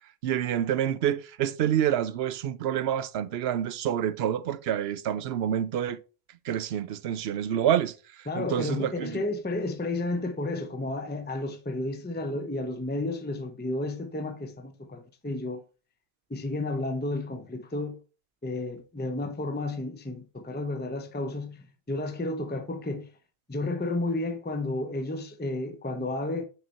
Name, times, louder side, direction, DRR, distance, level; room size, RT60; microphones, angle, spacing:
voice 1, 0.2-6.0 6.4-7.9 8.4-9.2, right 10 dB, 75° right, 0.8 m, -27 dB
voice 2, 8.3-15.6 16.3-18.0 18.4-23.1 23.5-26.4, left 2 dB, 10° left, 0.7 m, -32 dB
6.6 x 4.9 x 4.2 m
omnidirectional pair, 1.1 m